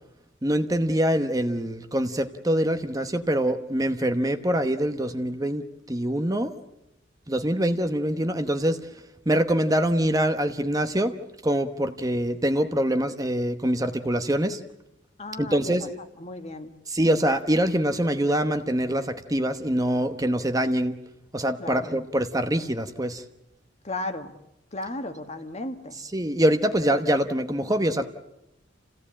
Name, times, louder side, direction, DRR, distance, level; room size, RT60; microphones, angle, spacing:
voice 1, 0.4-6.5 7.3-8.8 9.3-11.1 11.4-14.6 15.4-15.9 16.9-21.0 21.3-23.2 26.0-28.1, right 1 dB, 20° right, 8 dB, 1.0 m, -24 dB
voice 2, 15.2-15.7 16.2-16.7 21.6-21.9 23.8-24.3 24.7-26.0, left 2 dB, 35° left, 8 dB, 1.6 m, -34 dB
28.0 x 17.0 x 8.7 m, 0.88 s
head